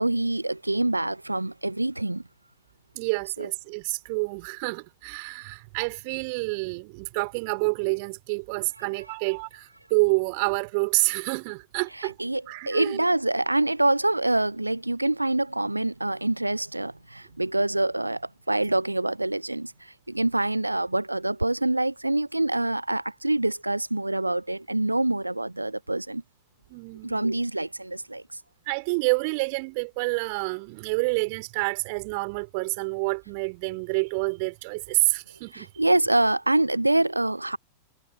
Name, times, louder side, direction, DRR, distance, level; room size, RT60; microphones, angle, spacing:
voice 1, 0.0-2.2 3.4-3.5 12.0-19.7 20.1-26.2 27.0-28.2 35.5-37.6, right 2 dB, 85° right, 0.8 m, -25 dB
voice 2, 3.0-12.1 12.5-13.0 26.7-27.3 28.7-35.7, right 31 dB, 45° right, 3.5 m, -28 dB
figure-of-eight pair, 90°, 0 cm